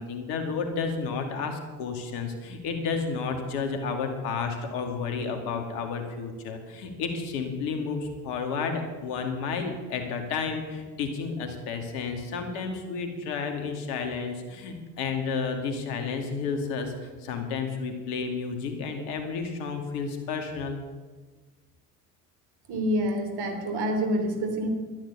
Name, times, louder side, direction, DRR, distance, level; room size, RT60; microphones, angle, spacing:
voice 1, 0.0-20.8, left 5 dB, 70° left, 5 dB, 2.6 m, -31 dB
voice 2, 22.7-24.7, equal, 55° right, 5 dB, 3.5 m, -27 dB
12.5 x 10.5 x 8.5 m, 1.3 s
hypercardioid pair, 65°, 47 cm